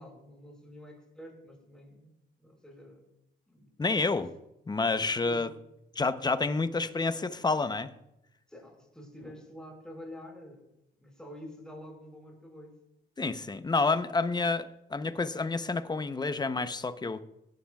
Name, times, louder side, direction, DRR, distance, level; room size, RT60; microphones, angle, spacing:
voice 1, 0.0-2.1 2.4-3.0 3.5-4.1 4.8-5.6 6.7-7.0 8.5-10.7 10.9-12.8, left 1 dB, 5° left, 5.3 m, -48 dB
voice 2, 3.8-4.3 4.7-5.5 6.0-7.9 13.2-17.2, left 3 dB, 20° left, 0.8 m, -29 dB
22.5 x 11.5 x 2.4 m
cardioid pair, 90°, 20 cm